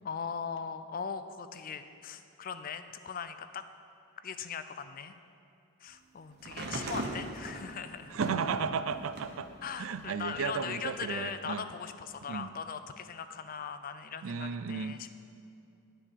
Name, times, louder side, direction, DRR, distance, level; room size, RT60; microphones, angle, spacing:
voice 1, 0.0-3.6 4.2-5.1 5.8-8.1 9.6-15.1, left 6 dB, 40° left, 10 dB, 0.4 m, -40 dB
sound 1, 6.4-9.4 9.9-11.1 12.1-12.2, right 2 dB, 45° right, 1.0 m, -39 dB
voice 2, 6.6-7.1 8.1-9.5 9.8-11.6 12.3-12.5 14.2-15.0, right 6 dB, 65° right, 12 dB, 0.4 m, -34 dB
10.0 x 8.6 x 5.3 m, 2.6 s
head